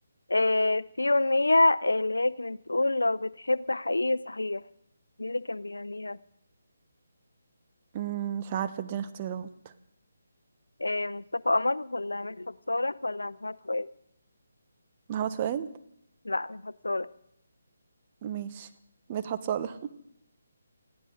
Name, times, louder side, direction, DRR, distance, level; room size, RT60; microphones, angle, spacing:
voice 1, 0.3-4.6 5.2-6.2 10.8-13.9 16.2-17.1, left 2 dB, 90° left, 19 dB, 0.6 m, -27 dB
voice 2, 7.9-9.5 15.1-15.7 18.2-18.7 19.1-19.8, right 9 dB, 30° right, 10 dB, 1.0 m, -32 dB
21.0 x 15.5 x 3.8 m, 0.76 s
figure-of-eight pair, 155°, 0 cm